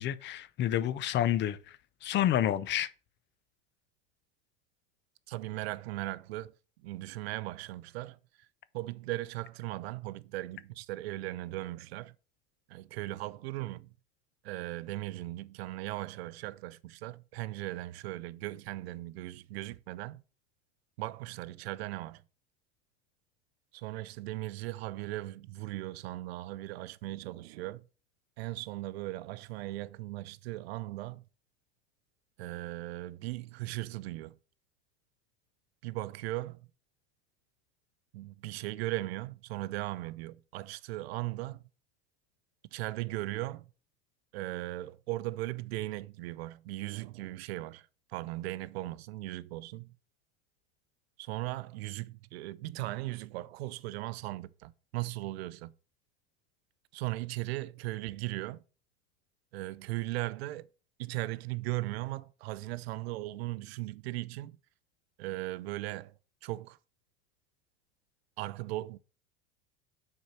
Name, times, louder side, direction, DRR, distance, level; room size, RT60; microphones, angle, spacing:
voice 1, 0.0-2.9, left 11 dB, 35° left, 0.6 m, -29 dB
voice 2, 5.3-6.5 6.8-8.2 8.7-12.1 12.7-13.9 14.4-20.2 21.0-22.2 23.7-27.9 28.4-31.3 32.4-34.4 35.8-36.6 38.1-41.6 42.7-43.7 44.3-49.9 51.2-55.7 56.9-58.6 59.5-60.7 61.0-64.6 65.2-66.1 66.4-66.8 68.4-69.0, right 18 dB, 75° right, 0.6 m, -38 dB
6.3 x 4.5 x 5.8 m
hypercardioid pair, 105°, 31 cm